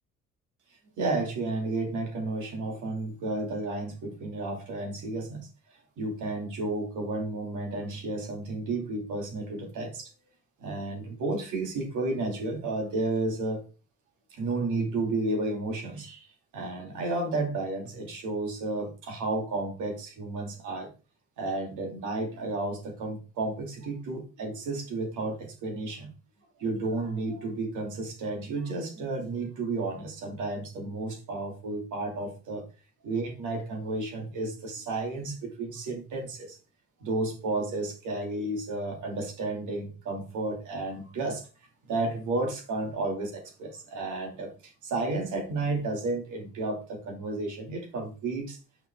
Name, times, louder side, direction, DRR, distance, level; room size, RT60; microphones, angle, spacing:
voice 1, 1.0-5.5 6.0-10.1 10.6-13.6 14.3-16.3 16.5-20.9 21.4-26.1 26.6-32.6 33.0-36.6 37.0-41.4 41.9-48.6, right 2 dB, 85° right, 2 dB, 2.9 m, -32 dB
7.5 x 5.9 x 3.8 m, 0.33 s
cardioid pair, 90°, 30 cm